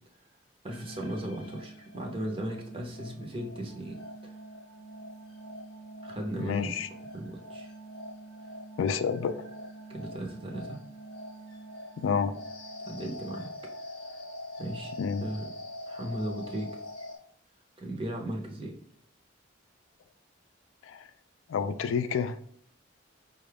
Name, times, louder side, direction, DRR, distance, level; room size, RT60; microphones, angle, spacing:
voice 1, 0.6-4.3 6.0-6.7 7.1-7.7 9.9-10.8 12.8-13.5 14.1-14.2 14.6-14.9 15.2-15.4 15.9-16.7 17.8-18.7, right 1 dB, 25° right, 1 dB, 0.7 m, -36 dB
sound 1, 0.7-17.2, equal, 25° left, 0.7 m, -44 dB
voice 2, 6.4-6.9 8.8-9.4 12.0-12.4 15.0-15.3 20.8-21.1 21.5-22.4, left 6 dB, 75° left, 10 dB, 0.3 m, -29 dB
5.2 x 2.3 x 3.3 m, 0.64 s
head